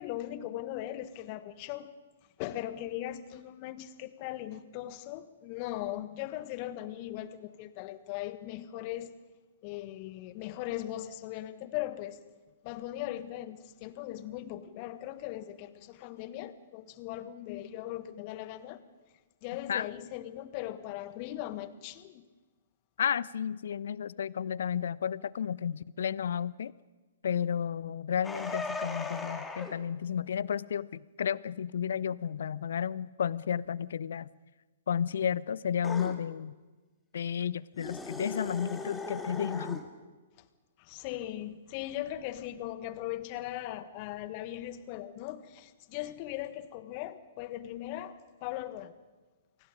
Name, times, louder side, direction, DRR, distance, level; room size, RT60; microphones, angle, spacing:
voice 1, 0.0-1.9 2.4-9.2 9.6-12.2 12.6-18.8 19.4-22.2 40.8-48.9, left 13 dB, 35° left, 1.5 m, -39 dB
voice 2, 23.0-26.7 27.2-34.3 34.9-36.6 37.1-39.8, left 8 dB, 60° left, 0.6 m, -32 dB
sound 1, 28.2-29.8 35.8-36.2 37.8-39.9, left 3 dB, 10° left, 2.3 m, -38 dB
30.0 x 24.0 x 5.2 m
figure-of-eight pair, 115°, 0 cm